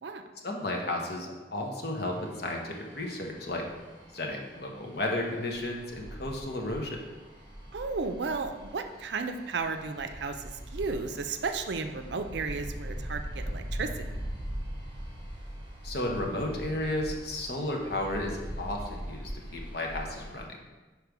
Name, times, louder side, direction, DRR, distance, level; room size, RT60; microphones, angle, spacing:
voice 1, 0.4-3.7 4.1-7.0 15.8-20.5, left 1 dB, 55° left, 1 dB, 1.0 m, -33 dB
sound 1, 2.0-20.5, equal, 25° right, 1.3 m, -41 dB
voice 2, 7.7-13.9, right 4 dB, 65° right, 7 dB, 0.5 m, -34 dB
5.2 x 4.8 x 4.7 m, 1.2 s
head